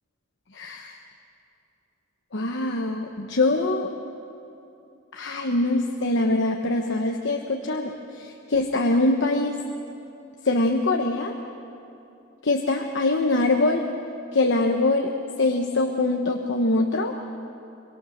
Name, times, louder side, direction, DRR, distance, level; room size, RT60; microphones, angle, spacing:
voice 1, 0.5-1.0 2.3-3.9 5.1-9.6 10.4-11.3 12.4-13.8 14.3-15.1 15.4-17.1, left 2 dB, 60° left, 3 dB, 1.1 m, -23 dB
23.5 x 23.0 x 6.5 m, 2.7 s
head